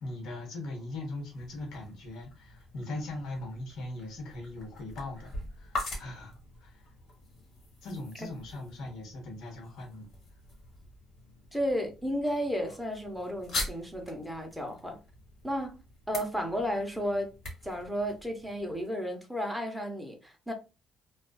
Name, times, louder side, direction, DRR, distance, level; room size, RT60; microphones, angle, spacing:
voice 1, 0.0-6.9 7.3-7.4 7.8-10.1 11.4-11.5, left 2 dB, 70° left, 1.0 m, -40 dB
sound 1, 1.1-18.9, left 2 dB, 55° left, 1.3 m, -44 dB
voice 2, 11.5-15.0 15.4-15.8 16.1-17.3 17.6-20.5, equal, ahead, 0.7 m, -33 dB
2.4 x 2.3 x 2.2 m
cardioid pair, 100°, 0 cm